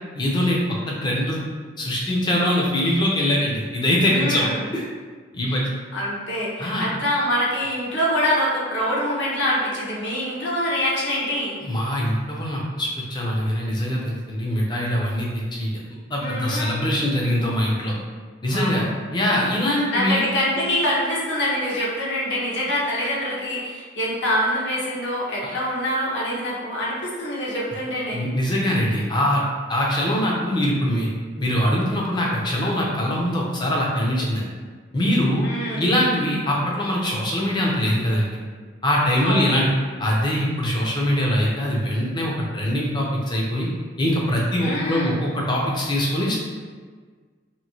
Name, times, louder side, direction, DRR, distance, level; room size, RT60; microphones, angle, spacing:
voice 1, 0.1-0.6 0.9-1.4 1.8-4.5 4.7-4.8 5.3-5.7 6.6-6.9 11.6-15.7 16.1-17.9 18.4-18.9 19.1-20.2 28.1-29.4 29.7-31.1 31.4-34.4 34.9-35.5 35.8-38.4 38.8-39.7 40.0-43.7 44.0-46.4, equal, 25° left, -3 dB, 0.5 m, -22 dB
voice 2, 4.1-4.6 5.5-5.6 5.9-11.6 16.2-16.8 18.5-18.9 19.9-28.2 35.4-35.9 39.2-39.5 44.6-45.2, equal, 75° left, -6 dB, 0.9 m, -25 dB
2.9 x 2.7 x 2.7 m, 1.5 s
head